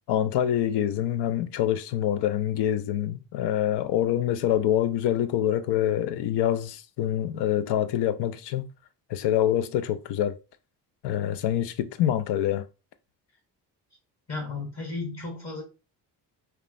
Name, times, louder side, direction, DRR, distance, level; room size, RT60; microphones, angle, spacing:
voice 1, 0.1-8.7 9.1-10.4 11.0-12.7, left 11 dB, 60° left, 0.5 m, -25 dB
voice 2, 14.3-15.6, left 3 dB, 35° left, 1.2 m, -34 dB
3.0 x 2.1 x 2.5 m
supercardioid pair, 60°, 47 cm